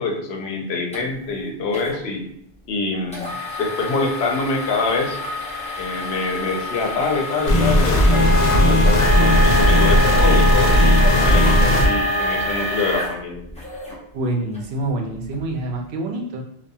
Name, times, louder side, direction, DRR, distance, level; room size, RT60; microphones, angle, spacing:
voice 1, 0.0-2.3 2.7-3.3 3.6-5.2 5.8-13.5, left 3 dB, 85° left, 1 dB, 0.8 m, -25 dB
sound 1, 0.9-1.0 1.7-2.0 3.1-14.0 14.5-14.6 15.2-15.4, equal, 10° left, 0.4 m, -28 dB
sound 2, 7.5-11.9, equal, 55° left, 0.6 m, -16 dB
Wind instrument woodwind instrument, 8.1-12.6, left 2 dB, 40° right, 0.8 m, -23 dB
voice 2, 14.1-16.4, right 2 dB, 85° right, 2 dB, 0.8 m, -26 dB
2.7 x 2.3 x 2.3 m, 0.71 s
omnidirectional pair, 1.0 m